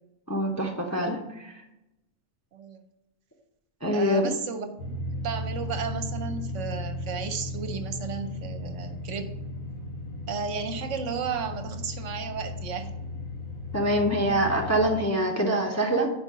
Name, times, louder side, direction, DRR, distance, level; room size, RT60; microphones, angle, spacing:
voice 1, 0.3-1.5 3.8-4.3 13.7-16.1, right 1 dB, 15° left, 0 dB, 0.6 m, -25 dB
voice 2, 2.5-2.8 3.9-9.4 10.3-12.9, right 6 dB, 65° right, 8 dB, 0.9 m, -34 dB
sound 1, 4.8-14.9, left 2 dB, 90° left, 1.4 m, -35 dB
5.3 x 4.9 x 6.3 m, 0.93 s
omnidirectional pair, 1.4 m